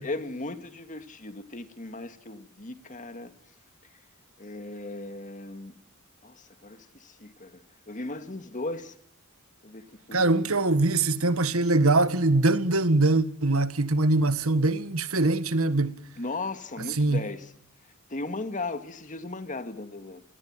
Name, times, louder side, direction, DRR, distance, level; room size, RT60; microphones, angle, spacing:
voice 1, 0.0-3.3 4.4-5.7 6.2-8.9 9.6-10.5 16.2-17.5 18.1-20.2, left 2 dB, 35° left, 2.2 m, -37 dB
voice 2, 10.1-16.0 17.0-17.2, right 2 dB, 70° right, 1.7 m, -23 dB
28.0 x 19.5 x 9.1 m
head